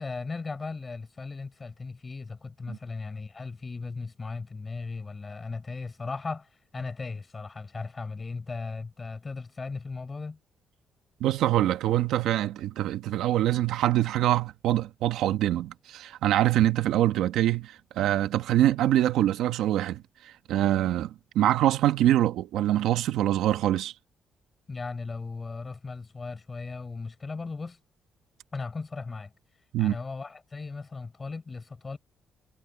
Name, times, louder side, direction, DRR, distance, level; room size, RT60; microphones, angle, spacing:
voice 1, 0.0-10.4 24.7-27.8 28.5-29.3 29.8-32.0, left 4 dB, 30° left, 4.9 m, -37 dB
voice 2, 11.2-23.9 29.7-29.9, right 13 dB, 85° right, 1.4 m, -24 dB
cardioid pair, 90°, 0 cm